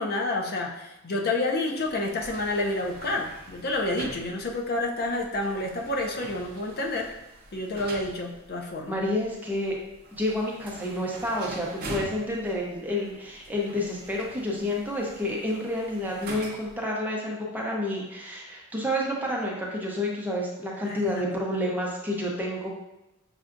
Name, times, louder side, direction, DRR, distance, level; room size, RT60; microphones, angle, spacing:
voice 1, 0.0-7.1 7.5-9.0 20.8-21.2, left 2 dB, 50° left, 1 dB, 0.5 m, -29 dB
sliding door, 1.8-16.8, right 2 dB, 45° right, 0.6 m, -44 dB
voice 2, 8.9-9.7 10.2-22.7, left 1 dB, 10° right, -3 dB, 0.7 m, -29 dB
6.3 x 2.3 x 2.5 m, 0.94 s
head